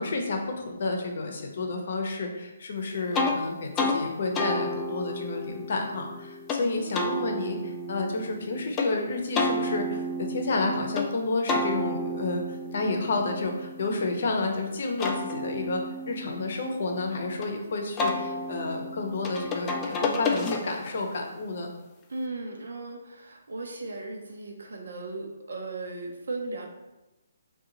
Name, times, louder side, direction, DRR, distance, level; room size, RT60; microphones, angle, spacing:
voice 1, 0.0-21.7, left 3 dB, 55° left, 3 dB, 0.6 m, -30 dB
sound 1, 3.1-3.4 3.8-4.0 4.4-6.6 6.9-8.9 9.4-11.1 11.5-14.4 14.8-17.5 18.0-21.0, left 2 dB, 15° left, 0.3 m, -31 dB
voice 2, 6.5-7.1 22.1-26.7, right 2 dB, 85° right, 2 dB, 0.6 m, -37 dB
2.7 x 2.3 x 3.9 m, 0.99 s
hypercardioid pair, 160°, 0 cm